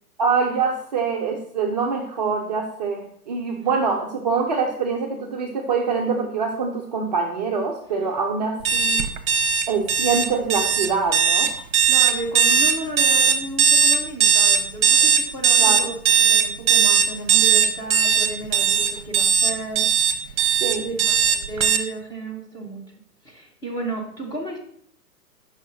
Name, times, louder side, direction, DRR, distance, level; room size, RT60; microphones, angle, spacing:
voice 1, 0.2-9.0 9.7-11.5 15.6-15.9 20.6-20.9, right 5 dB, 30° right, 0 dB, 0.4 m, -24 dB
sound 1, 8.6-21.8, right 7 dB, 60° right, 0.8 m, -18 dB
voice 2, 11.8-22.9 23.2-24.6, right 2 dB, 10° left, -1 dB, 0.7 m, -33 dB
5.5 x 5.4 x 3.7 m, 0.64 s
hypercardioid pair, 130°, 47 cm